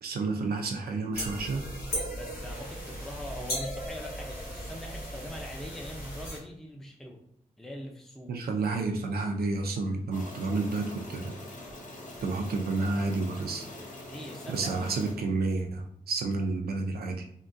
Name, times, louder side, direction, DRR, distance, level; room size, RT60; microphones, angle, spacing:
voice 1, 0.0-1.6 8.3-11.3 12.2-13.7 14.5-17.3, right 3 dB, 80° right, 4 dB, 0.4 m, -30 dB
sound 1, 1.1-6.4, equal, 85° left, 1.4 m, -37 dB
voice 2, 2.1-7.2 7.6-8.3 14.1-14.7, equal, ahead, 0 dB, 0.5 m, -42 dB
sound 2, 10.1-15.1, left 1 dB, 55° left, 0.7 m, -44 dB
3.6 x 2.2 x 2.5 m, 0.68 s
wide cardioid pair, 85°, 16 cm